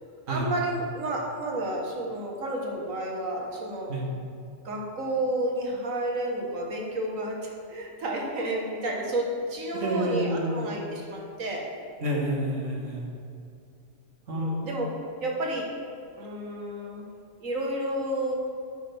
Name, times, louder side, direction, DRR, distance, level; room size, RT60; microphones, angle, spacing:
voice 1, 0.3-3.9 4.6-11.7 14.3-14.9 15.2-15.7 16.2-17.1 17.4-18.4, right 1 dB, 85° right, -1 dB, 1.8 m, -31 dB
voice 2, 9.7-10.7 12.0-13.1 14.3-14.9, right 1 dB, 70° right, -2 dB, 1.9 m, -29 dB
9.0 x 8.5 x 3.5 m, 2.5 s
omnidirectional pair, 1.3 m